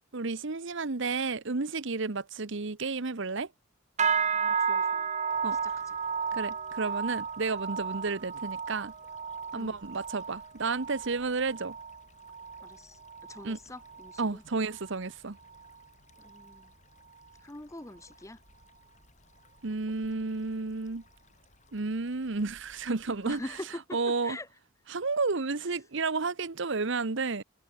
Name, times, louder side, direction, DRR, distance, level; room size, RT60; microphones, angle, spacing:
voice 1, 0.1-3.5 5.4-5.6 6.3-8.9 9.5-11.8 13.4-13.6 14.2-15.4 19.6-21.0 21.7-23.4 23.9-24.4 24.9-27.4, right 3 dB, 60° right, 1.0 m, -31 dB
sound 1, 4.0-13.5 13.8-14.3 14.7-15.0 15.6-15.7, right 6 dB, 35° right, 1.4 m, -33 dB
voice 2, 4.3-5.1 5.6-6.0 9.5-9.8 12.6-13.0 13.3-14.4 16.2-16.7 17.4-18.4 23.3-24.0 24.2-24.5, left 1 dB, 15° left, 0.9 m, -43 dB
sound 2, 5.3-23.6, left 2 dB, 35° left, 5.9 m, -61 dB
head